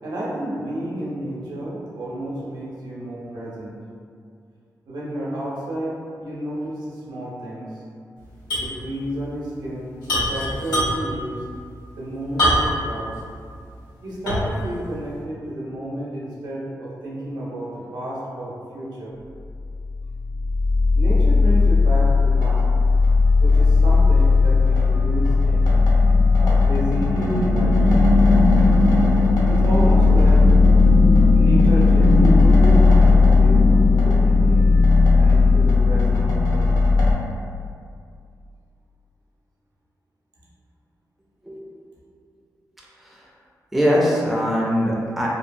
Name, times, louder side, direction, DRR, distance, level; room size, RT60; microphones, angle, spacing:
voice 1, 0.0-3.8 4.9-7.8 8.6-11.4 12.0-13.1 14.0-19.1 20.9-22.7 23.4-25.8 26.4-27.9 29.5-30.5 31.3-34.7 35.2-36.9, right 1 dB, 85° right, -6 dB, 0.7 m, -31 dB
sound 1, 8.5-8.8 9.0-9.1 10.0-11.2 12.4-12.9 13.4-13.5 14.3-14.6, equal, 90° left, 1.2 m, -22 dB
sound 2, 19.7-37.1, left 3 dB, 65° left, 0.6 m, -15 dB
voice 2, 43.7-45.3, equal, ahead, -5 dB, 0.4 m, -21 dB
2.7 x 2.2 x 2.5 m, 2.3 s
wide cardioid pair, 145°, 7 cm